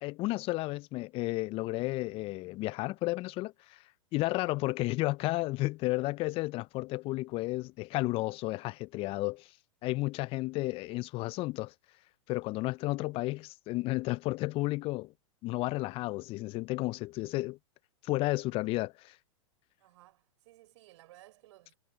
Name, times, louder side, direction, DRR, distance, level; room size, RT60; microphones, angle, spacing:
voice 1, 0.0-3.8 4.1-9.5 9.8-11.7 12.3-15.1 15.4-17.6 18.0-19.2, left 20 dB, 35° left, 0.5 m, -32 dB
voice 2, 19.8-21.8, right 16 dB, 60° right, 3.9 m, -58 dB
hypercardioid pair, 100°, 17 cm